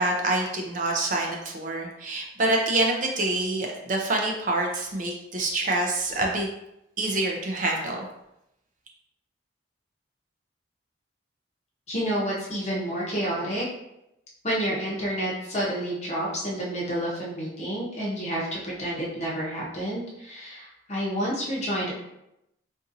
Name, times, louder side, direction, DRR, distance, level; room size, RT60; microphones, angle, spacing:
voice 1, 0.0-6.5 7.0-8.1, right 2 dB, 40° right, 1 dB, 0.4 m, -26 dB
voice 2, 11.9-13.6 14.4-21.9, equal, 35° left, -5 dB, 0.7 m, -29 dB
3.8 x 2.6 x 2.6 m, 0.85 s
head